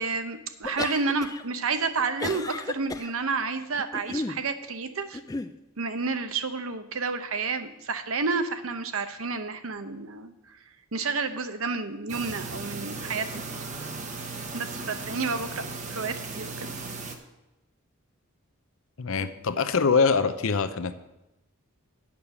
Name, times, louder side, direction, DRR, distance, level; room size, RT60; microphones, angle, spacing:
voice 1, 0.0-5.2 5.8-10.3 10.9-13.4 14.5-15.6 15.9-16.7, right 4 dB, 65° right, 9 dB, 0.8 m, -30 dB
sound 1, 0.6-1.4 1.7-3.1 3.7-4.4 5.1-5.5, left 3 dB, 15° left, 0.3 m, -33 dB
sound 2, 12.1-17.2, right 3 dB, 35° right, 0.9 m, -36 dB
voice 2, 19.0-21.0, left 5 dB, 65° left, 11 dB, 0.6 m, -24 dB
8.6 x 6.5 x 7.0 m, 0.95 s
head